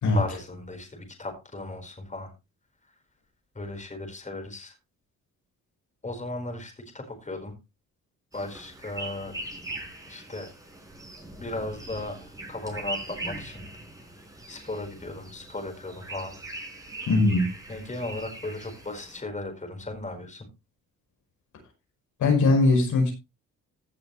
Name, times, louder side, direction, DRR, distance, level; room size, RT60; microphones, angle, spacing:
voice 1, 0.1-2.3 3.5-4.8 6.0-7.5 8.3-9.4 10.1-10.5 11.4-13.7 14.5-16.3 17.7-20.5, left 2 dB, 25° left, 4.6 m, -36 dB
sound 1, 8.3-19.2, right 2 dB, 10° right, 4.4 m, -41 dB
voice 2, 17.1-17.5 22.2-23.1, left 2 dB, 70° left, 5.2 m, -20 dB
16.5 x 7.1 x 3.2 m
cardioid pair, 90°, 30 cm